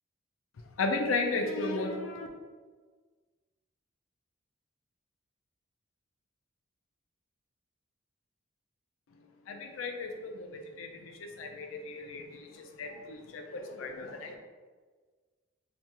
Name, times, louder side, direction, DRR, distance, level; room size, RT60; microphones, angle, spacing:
voice 1, 0.8-2.3 9.5-14.3, left 3 dB, 85° left, 4 dB, 0.4 m, -35 dB
3.4 x 2.4 x 2.8 m, 1.5 s
head